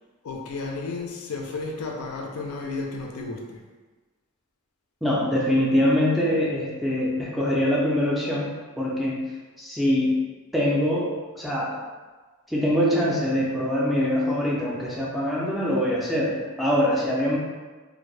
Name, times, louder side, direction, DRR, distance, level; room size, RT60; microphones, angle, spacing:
voice 1, 0.2-3.6, left 3 dB, 80° left, 1 dB, 0.4 m, -33 dB
voice 2, 5.0-9.2 9.6-10.2 10.5-11.8 12.5-17.4, equal, ahead, -5 dB, 0.3 m, -24 dB
2.1 x 2.0 x 3.0 m, 1.3 s
head